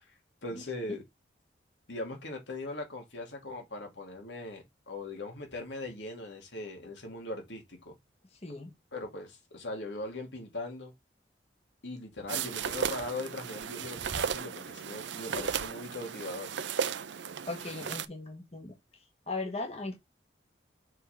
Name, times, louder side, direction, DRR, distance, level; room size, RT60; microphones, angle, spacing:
voice 1, 0.4-1.0 1.9-7.9 8.9-10.9 11.8-16.5, left 2 dB, 80° left, 2.5 m, -40 dB
voice 2, 8.4-8.7 17.5-18.7 19.3-19.9, left 3 dB, 35° left, 1.5 m, -38 dB
sound 1, 12.3-18.1, right 7 dB, 80° right, 0.6 m, -35 dB
6.5 x 3.9 x 4.4 m
head